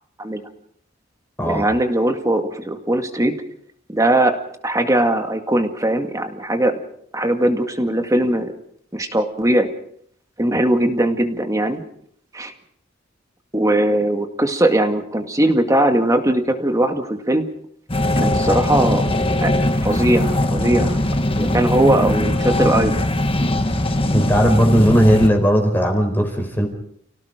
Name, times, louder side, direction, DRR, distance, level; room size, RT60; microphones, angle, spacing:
voice 1, 1.5-3.3 3.9-4.4 4.6-6.7 7.1-8.5 8.9-9.7 10.4-11.8 12.3-12.5 13.5-17.5 18.2-19.0 19.4-21.0 21.3-23.1, right 1 dB, 15° right, 6 dB, 2.1 m, -19 dB
sound 1, 17.9-25.3, left 1 dB, 30° left, 1.5 m, -20 dB
voice 2, 24.1-26.7, equal, 10° left, 2 dB, 4.4 m, -17 dB
30.0 x 17.5 x 5.1 m, 0.64 s
head